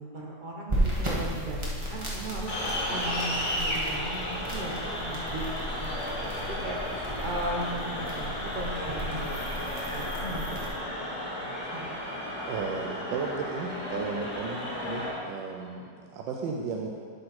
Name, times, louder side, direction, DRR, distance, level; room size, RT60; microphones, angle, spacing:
voice 1, 0.0-2.5 2.9-12.0, right 1 dB, 50° right, -2 dB, 0.6 m, -38 dB
sound 1, 0.7-10.7, right 1 dB, 20° right, 1.1 m, -35 dB
sound 2, 2.5-15.1, left 1 dB, 40° left, 2.3 m, -34 dB
voice 2, 12.5-16.9, right 4 dB, 85° right, 0 dB, 1.4 m, -34 dB
11.5 x 4.4 x 4.2 m, 2.1 s
omnidirectional pair, 2.0 m